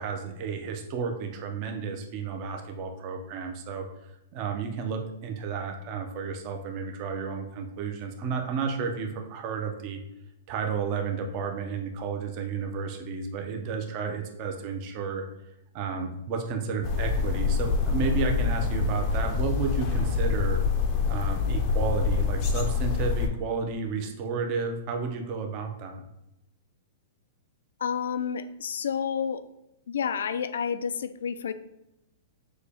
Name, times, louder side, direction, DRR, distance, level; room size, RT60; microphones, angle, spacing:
voice 1, 0.0-3.9 4.3-10.0 10.5-15.2 15.7-20.6 21.1-26.0, right 5 dB, 35° right, 3 dB, 0.6 m, -32 dB
sound 1, 16.8-23.3, left 5 dB, 30° left, 0.5 m, -26 dB
voice 2, 27.8-29.4 29.9-31.5, left 7 dB, 90° left, 12 dB, 0.3 m, -30 dB
6.2 x 2.2 x 3.4 m, 0.86 s
hypercardioid pair, 160°, 0 cm